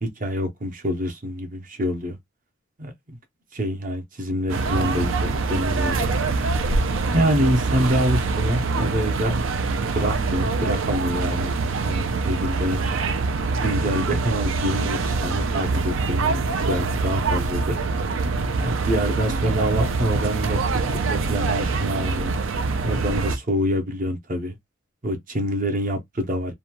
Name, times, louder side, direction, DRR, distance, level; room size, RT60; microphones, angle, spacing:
voice 1, 0.0-2.2 2.8-3.2 3.5-6.2 7.1-9.4 9.8-11.5 11.9-12.9 13.6-17.8 18.6-22.4 22.8-24.6 25.0-26.5, equal, 40° right, 0.8 m, -26 dB
sound 1, 4.5-23.4, right 3 dB, 70° right, 0.5 m, -24 dB
2.7 x 2.2 x 2.9 m
head